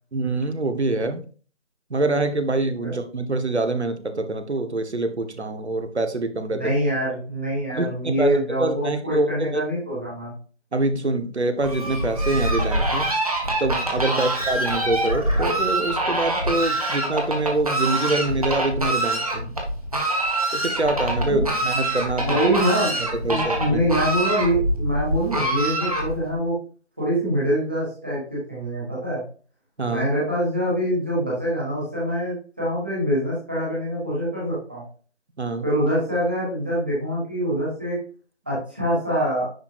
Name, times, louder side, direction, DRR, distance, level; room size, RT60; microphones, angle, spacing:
voice 1, 0.1-1.2 1.9-6.6 7.7-9.7 10.7-13.1 13.6-19.6 20.5-22.4 23.2-23.8 29.8-30.1 35.4-35.7, right 2 dB, 70° right, 9 dB, 1.3 m, -25 dB
voice 2, 6.5-10.3 14.1-14.3 21.3-21.4 22.2-23.0 23.2-26.5 27.0-29.2 29.8-34.8 35.6-38.0 38.5-39.4, equal, 10° right, -7 dB, 1.3 m, -24 dB
Fowl, 11.6-26.4, right 1 dB, 30° right, 1.4 m, -25 dB
9.9 x 4.3 x 2.5 m, 0.39 s
figure-of-eight pair, 170°, 35 cm